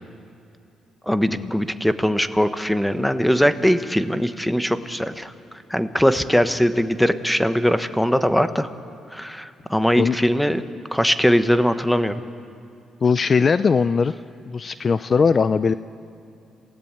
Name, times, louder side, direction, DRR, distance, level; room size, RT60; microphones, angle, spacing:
voice 1, 1.1-5.3 5.7-8.7 9.1-10.6 10.9-12.2, equal, ahead, 11 dB, 1.1 m, -20 dB
voice 2, 13.0-14.1 14.5-15.7, left 5 dB, 40° left, 14 dB, 0.5 m, -19 dB
27.5 x 17.0 x 8.9 m, 2.6 s
cardioid pair, 90°, 0 cm